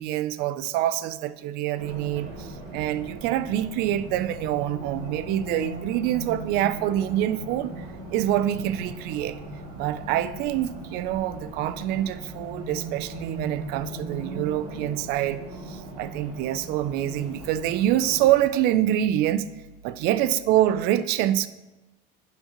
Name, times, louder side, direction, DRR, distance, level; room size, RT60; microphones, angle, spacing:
voice 1, 0.0-7.8 8.1-9.4 9.7-15.4 15.7-19.5 19.8-21.5, right 12 dB, 55° right, 0.4 m, -26 dB
Race car auto racing, 1.8-18.3, right 1 dB, 80° right, 2.4 m, -39 dB
sound 1, 3.5-20.8, right 3 dB, ahead, 2.1 m, -52 dB
8.6 x 5.4 x 2.9 m
cardioid pair, 145°, 20 cm